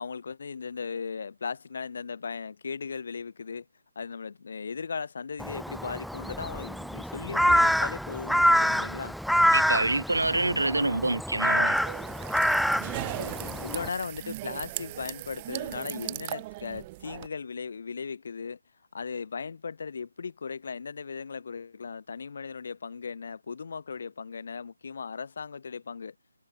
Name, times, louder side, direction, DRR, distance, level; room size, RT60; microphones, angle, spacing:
voice 1, 0.0-3.6 3.9-9.2 13.1-18.6 18.9-26.1, left 5 dB, 55° left, 4.5 m, -37 dB
Crow, 5.4-13.9, equal, ahead, 0.5 m, -26 dB
voice 2, 9.5-11.8, right 2 dB, 85° right, 5.5 m, -26 dB
sound 1, 11.6-17.3, right 20 dB, 25° right, 4.2 m, -38 dB
figure-of-eight pair, 155°, 0 cm